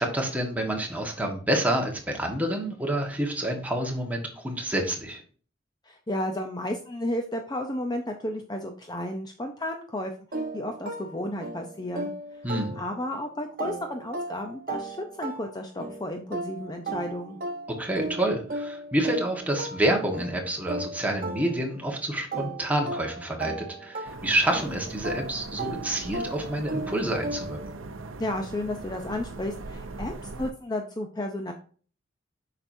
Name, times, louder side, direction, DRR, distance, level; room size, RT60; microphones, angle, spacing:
voice 1, 0.0-5.2 12.4-12.7 17.8-27.6, right 1 dB, 10° right, 1 dB, 1.4 m, -28 dB
voice 2, 5.8-10.1 10.5-12.1 12.4-12.5 12.8-17.4 28.2-31.5, left 1 dB, 20° left, 4 dB, 0.6 m, -32 dB
sound 1, 10.3-13.2 13.6-21.9 22.3-27.8, right 2 dB, 45° right, 1.0 m, -36 dB
sound 2, 24.0-30.5, right 3 dB, 85° right, 0.7 m, -40 dB
7.9 x 5.8 x 2.7 m, 0.42 s
head